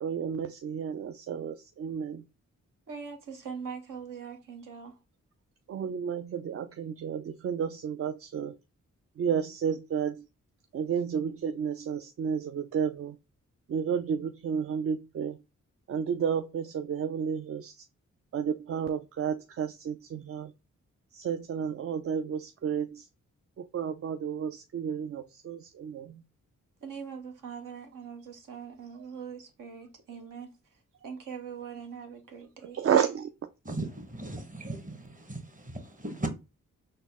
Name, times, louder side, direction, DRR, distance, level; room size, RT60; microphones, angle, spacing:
voice 1, 0.0-2.2 5.7-8.5 9.2-10.3 10.7-13.2 13.7-15.4 15.9-17.9 18.3-20.5 21.1-23.1 23.6-26.2 32.7-33.3, right 7 dB, 45° right, 0.4 m, -31 dB
voice 2, 2.9-5.0 26.8-32.8, right 6 dB, 75° right, 1.0 m, -42 dB
voice 3, 33.6-36.3, right 2 dB, 25° right, 1.1 m, -37 dB
4.0 x 2.1 x 3.5 m
supercardioid pair, 45°, 32 cm